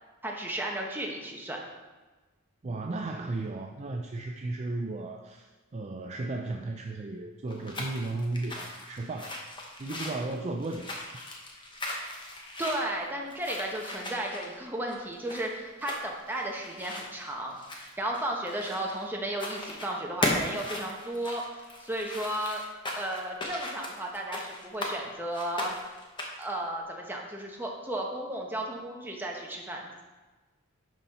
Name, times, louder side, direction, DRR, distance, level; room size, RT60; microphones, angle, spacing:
voice 1, 0.2-1.6 12.6-22.6 23.0-25.7 26.4-30.0, right 1 dB, 10° right, -1 dB, 1.0 m, -34 dB
voice 2, 2.6-9.4 9.8-11.0, right 2 dB, 30° right, 3 dB, 0.4 m, -35 dB
sound 1, 7.5-19.0 19.3-19.9 20.2-25.0 25.3-26.5, left 1 dB, 20° left, 1.0 m, -37 dB
11.0 x 4.2 x 4.2 m, 1.2 s
head